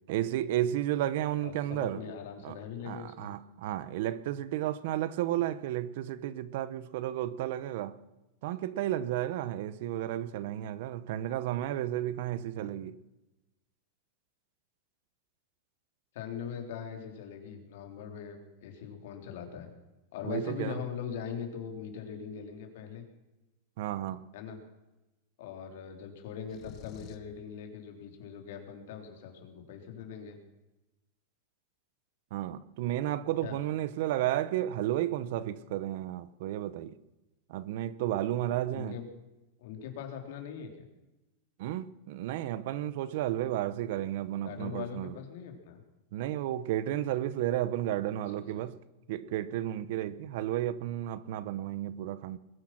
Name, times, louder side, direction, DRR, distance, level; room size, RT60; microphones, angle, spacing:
voice 1, 0.1-2.0 2.4-2.6 2.8-8.0 8.4-13.0 20.2-20.8 23.8-24.2 32.3-37.0 37.5-39.0 41.6-45.2 46.1-48.8 49.1-52.4, right 13 dB, 50° right, 0.8 m, -32 dB
voice 2, 1.4-3.3 16.1-19.7 20.1-23.0 24.3-24.6 25.4-30.4 33.4-33.6 38.7-39.1 39.6-40.8 44.4-45.8, left 7 dB, 60° left, 3.5 m, -41 dB
sound 1, 26.5-27.4, left 9 dB, 30° left, 1.1 m, -48 dB
21.0 x 10.5 x 6.0 m
supercardioid pair, 170°, 0 cm